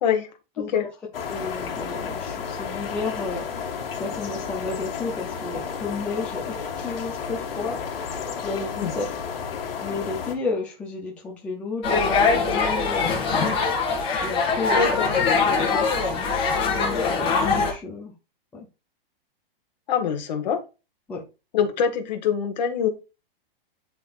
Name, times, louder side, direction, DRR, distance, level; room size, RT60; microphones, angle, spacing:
voice 1, 0.6-0.9 8.8-8.9 14.7-15.1 19.9-20.6 21.5-22.9, left 7 dB, 45° left, 1.6 m, -24 dB
sound 1, 1.1-10.3, left 6 dB, 70° left, 1.9 m, -32 dB
voice 2, 1.3-3.4 3.9-9.0 9.8-13.7 14.2-15.0 15.6-18.1 18.5-18.7 21.1-21.2, left 3 dB, 5° left, 0.6 m, -32 dB
sound 2, 11.8-17.7, left 4 dB, 30° left, 2.6 m, -22 dB
11.5 x 4.0 x 2.5 m
hypercardioid pair, 175°, 29 cm